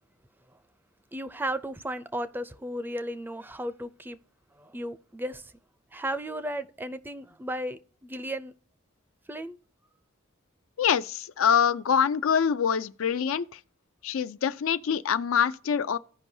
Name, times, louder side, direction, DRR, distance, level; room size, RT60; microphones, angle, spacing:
voice 1, 1.1-4.2 4.5-5.5 5.9-8.5 9.3-9.6, right 1 dB, 10° right, 0.4 m, -35 dB
voice 2, 10.8-13.6 14.0-16.0, left 7 dB, 75° left, 0.4 m, -25 dB
16.0 x 5.3 x 2.7 m
head